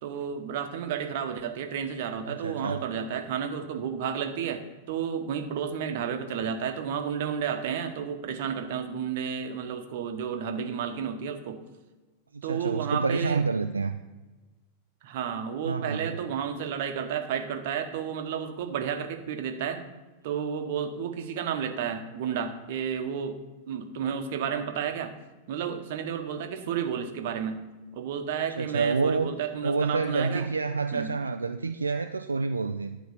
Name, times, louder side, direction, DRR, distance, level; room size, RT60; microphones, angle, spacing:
voice 1, 0.0-11.6 12.4-13.4 15.0-19.9 20.2-23.4 23.7-25.1 25.5-27.7 27.9-30.5 30.9-31.1, right 7 dB, 55° right, 7 dB, 1.0 m, -32 dB
voice 2, 2.3-2.8 12.3-14.0 15.6-16.1 28.3-29.3 29.6-33.0, right 4 dB, 75° right, 7 dB, 0.3 m, -28 dB
10.5 x 4.6 x 6.7 m, 1.2 s
figure-of-eight pair, 90°, 0 cm